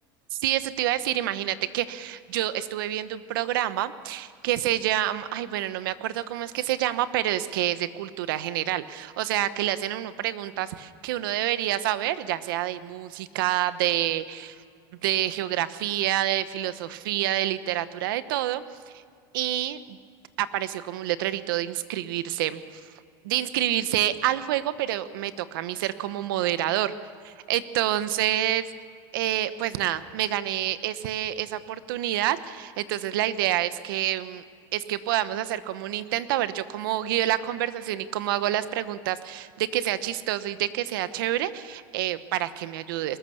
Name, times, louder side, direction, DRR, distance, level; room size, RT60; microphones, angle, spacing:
voice 1, 0.3-14.6 15.0-18.6 19.3-20.0 20.4-22.8 23.2-26.9 27.2-28.6 29.1-34.4 34.7-43.2, right 13 dB, 85° right, 13 dB, 1.1 m, -28 dB
22.0 x 19.5 x 7.1 m, 2.2 s
supercardioid pair, 175°, 11 cm